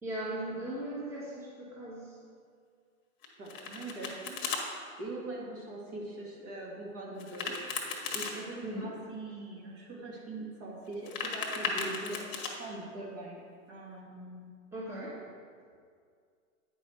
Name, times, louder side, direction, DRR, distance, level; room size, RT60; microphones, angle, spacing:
voice 1, 0.0-2.1 8.6-8.9 14.7-15.2, right 1 dB, 5° right, -7 dB, 1.4 m, -38 dB
Domestic sounds home sounds, 3.2-4.6 7.2-8.3 10.9-12.5, left 5 dB, 30° left, 1.3 m, -36 dB
voice 2, 3.4-4.4 5.0-13.4 13.7-14.5, right 2 dB, 30° right, -3 dB, 1.7 m, -42 dB
9.1 x 5.5 x 4.4 m, 2.1 s
hypercardioid pair, 135°, 42 cm